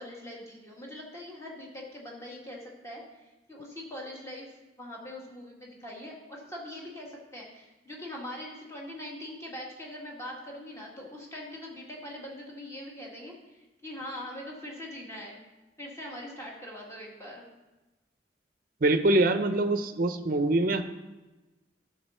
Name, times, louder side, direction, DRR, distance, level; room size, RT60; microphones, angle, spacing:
voice 1, 0.0-3.0 3.5-4.5 4.8-15.4 15.8-17.4, left 1 dB, 15° left, -2 dB, 1.9 m, -42 dB
voice 2, 18.8-20.8, right 2 dB, 50° right, 9 dB, 0.7 m, -24 dB
12.0 x 6.6 x 4.3 m, 1.1 s
head